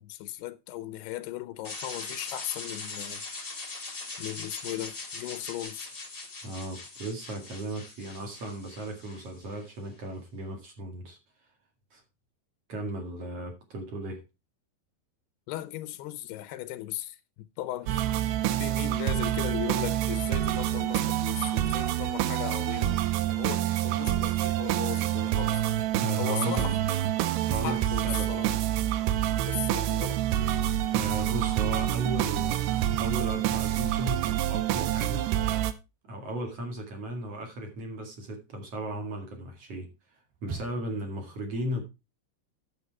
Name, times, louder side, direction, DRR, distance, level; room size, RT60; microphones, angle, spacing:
voice 1, 0.0-3.2 4.2-5.9 15.5-18.1 18.6-23.0 23.3-25.6 26.2-26.8 27.5-28.7 29.5-30.2, left 14 dB, 85° left, 2.9 m, -37 dB
enigmatic noise sweep, 1.6-9.7, left 3 dB, 25° left, 1.2 m, -41 dB
voice 2, 6.4-11.2 11.9-12.0 12.7-14.2 26.0-26.7 27.5-27.8 28.0-28.5 30.9-35.3 36.1-39.9 40.4-41.8, right 1 dB, 45° right, 2.7 m, -36 dB
sound 1, 17.9-35.7, right 12 dB, 90° right, 2.9 m, -27 dB
sound 2, 36.0-41.1, right 4 dB, 70° right, 4.1 m, -47 dB
9.7 x 7.4 x 4.6 m
omnidirectional pair, 4.6 m